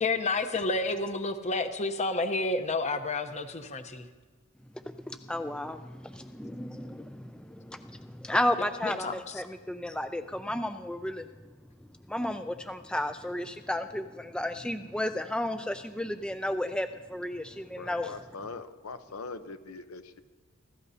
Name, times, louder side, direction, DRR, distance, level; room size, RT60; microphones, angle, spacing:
voice 1, 0.0-4.0 8.8-9.2, left 3 dB, 35° left, 8 dB, 0.9 m, -30 dB
voice 2, 5.0-11.3 12.1-18.2, left 1 dB, 5° left, 8 dB, 0.3 m, -33 dB
voice 3, 17.8-20.2, left 4 dB, 85° left, 9 dB, 0.8 m, -42 dB
24.0 x 13.5 x 2.8 m, 1.3 s
head